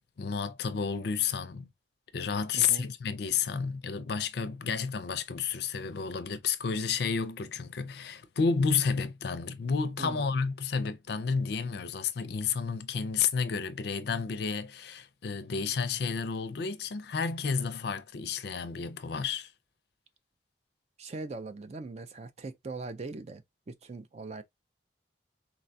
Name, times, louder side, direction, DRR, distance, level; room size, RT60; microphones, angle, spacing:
voice 1, 0.2-1.7 2.1-19.5, left 5 dB, 55° left, 0.4 m, -31 dB
voice 2, 2.5-2.9 10.0-10.3 21.0-24.4, right 3 dB, 35° right, 0.4 m, -41 dB
4.0 x 2.3 x 2.6 m
head